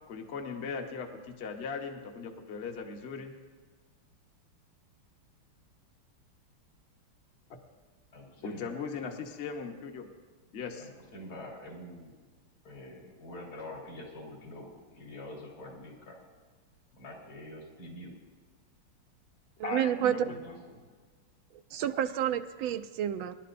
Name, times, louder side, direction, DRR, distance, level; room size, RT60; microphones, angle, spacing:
voice 1, 0.1-3.3 7.5-7.6 8.4-10.1 10.5-10.9 19.6-20.4, left 5 dB, 40° left, 3 dB, 1.0 m, -38 dB
voice 2, 8.1-8.7 10.8-12.1 12.6-16.2 16.9-18.1 20.2-20.8, left 1 dB, 75° left, -2 dB, 4.0 m, -46 dB
voice 3, 19.6-20.3 21.7-23.3, right 10 dB, 80° right, 10 dB, 1.3 m, -29 dB
25.5 x 11.5 x 2.6 m, 1.5 s
omnidirectional pair, 2.3 m